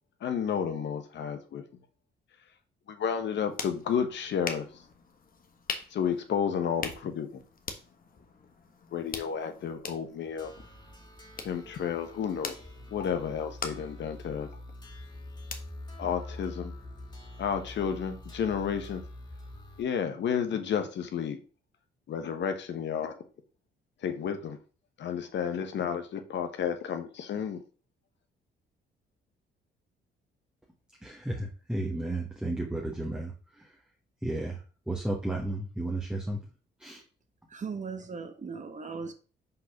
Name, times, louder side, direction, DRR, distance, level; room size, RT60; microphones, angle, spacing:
voice 1, 0.2-1.6 2.9-4.7 5.9-7.4 8.9-10.5 11.4-12.6 12.9-14.5 16.0-16.7 17.4-19.0 19.8-21.4 22.1-23.1 24.0-24.6 25.0-27.6, left 7 dB, 65° left, 1.1 m, -31 dB
sound 1, 3.1-16.9, left 5 dB, 45° left, 1.3 m, -44 dB
sound 2, 10.4-19.8, left 1 dB, 20° left, 2.3 m, -45 dB
voice 2, 31.0-33.3 34.2-34.6 34.9-36.4 36.8-37.0, right 2 dB, 5° right, 1.3 m, -33 dB
voice 3, 37.5-39.1, right 5 dB, 40° right, 1.1 m, -38 dB
5.6 x 4.0 x 5.8 m
cardioid pair, 90°, 20 cm